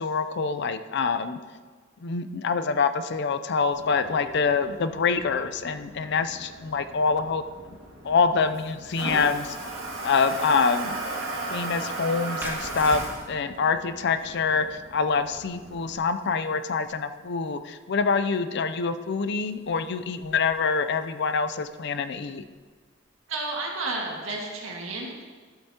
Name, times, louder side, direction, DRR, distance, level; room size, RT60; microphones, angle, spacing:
voice 1, 0.0-1.4 2.0-7.4 8.0-9.6 10.0-11.0 11.5-22.4, left 5 dB, 60° left, 11 dB, 0.5 m, -25 dB
Toilet flush, 3.7-16.0, right 2 dB, 70° right, 1.8 m, -37 dB
sound 1, 12.4-23.7, right 1 dB, 10° right, 0.9 m, -47 dB
voice 2, 23.3-25.2, right 3 dB, 85° right, -1 dB, 1.8 m, -32 dB
12.0 x 7.9 x 2.8 m, 1.5 s
head